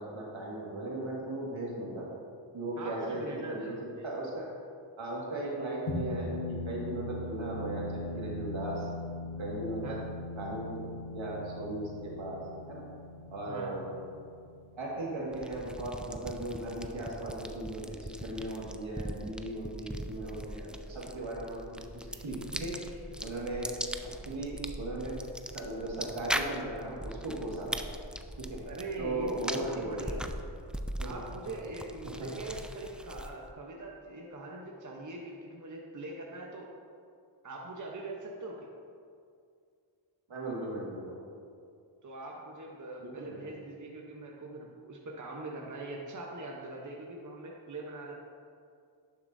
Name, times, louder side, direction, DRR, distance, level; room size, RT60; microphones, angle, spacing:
voice 1, 0.0-2.0 2.5-4.5 5.0-8.9 9.4-10.0 10.4-10.8 11.1-12.4 12.7-12.8 13.3-13.9 14.8-23.7 24.0-25.2 25.5-27.9 28.4-28.6 29.0-30.1 31.0-31.2 32.2-32.3 40.3-41.1 43.0-43.5, right 1 dB, 70° right, -4 dB, 2.0 m, -37 dB
voice 2, 2.8-4.1 9.8-10.0 13.4-13.9 28.7-30.2 31.0-36.7 37.4-38.7 42.0-48.2, right 2 dB, 35° right, -1 dB, 1.0 m, -42 dB
sound 1, 5.9-16.6, left 2 dB, 70° left, 1.4 m, -40 dB
sound 2, 15.3-33.5, equal, ahead, 0.3 m, -40 dB
11.0 x 6.9 x 2.7 m, 2.3 s
cardioid pair, 50°, 49 cm